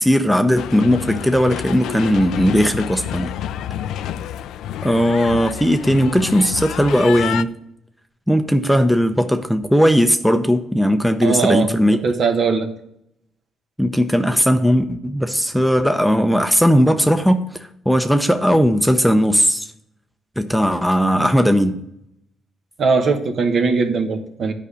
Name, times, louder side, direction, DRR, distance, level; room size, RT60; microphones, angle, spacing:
voice 1, 0.0-3.3 4.8-7.5 8.3-12.0 13.8-17.4 17.9-19.7 20.4-21.8, equal, ahead, 7 dB, 0.6 m, -17 dB
sound 1, 0.6-7.4, left 10 dB, 85° left, 0.3 m, -29 dB
voice 2, 11.2-12.7 22.8-24.5, right 4 dB, 60° right, 5 dB, 1.3 m, -20 dB
9.7 x 5.2 x 6.9 m, 0.76 s
cardioid pair, 90°, 0 cm